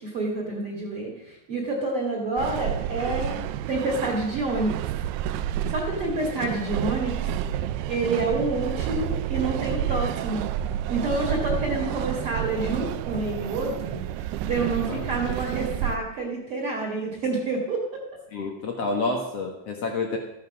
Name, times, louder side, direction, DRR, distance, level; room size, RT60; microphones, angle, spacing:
voice 1, 0.0-3.4 3.7-4.8 5.7-7.1 7.9-10.5 10.9-14.0 14.4-18.0, right 2 dB, 40° right, -1 dB, 2.5 m, -28 dB
sound 1, 2.4-16.0, right 11 dB, 80° right, 2.6 m, -30 dB
voice 2, 18.3-20.2, left 3 dB, 70° left, 2 dB, 1.5 m, -29 dB
14.0 x 9.3 x 6.3 m, 0.84 s
omnidirectional pair, 5.0 m